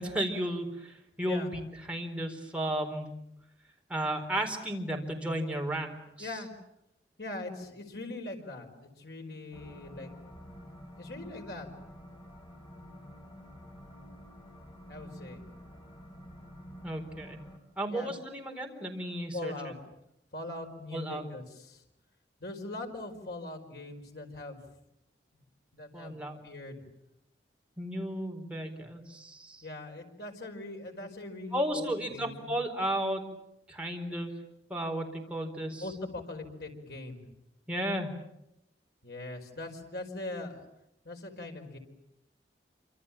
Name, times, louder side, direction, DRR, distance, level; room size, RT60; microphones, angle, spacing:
voice 1, 0.0-1.6 1.9-3.2 3.9-6.3 16.8-17.4 17.8-19.7 20.9-21.2 25.9-26.4 27.8-29.6 31.5-33.2 33.7-34.3 34.7-35.8 37.7-38.1, right 1 dB, 5° right, 1 dB, 4.4 m, -34 dB
voice 2, 6.2-6.5 7.2-10.1 11.0-11.7 14.9-15.4 17.9-18.1 19.3-19.7 20.3-21.8 22.4-24.6 25.3-25.4 25.7-26.8 29.6-32.5 35.8-37.3 39.0-40.6 41.0-41.8, left 2 dB, 65° left, 3 dB, 5.0 m, -41 dB
sound 1, 9.5-17.6, equal, 25° left, 4.4 m, -49 dB
27.5 x 26.5 x 7.5 m, 0.84 s
head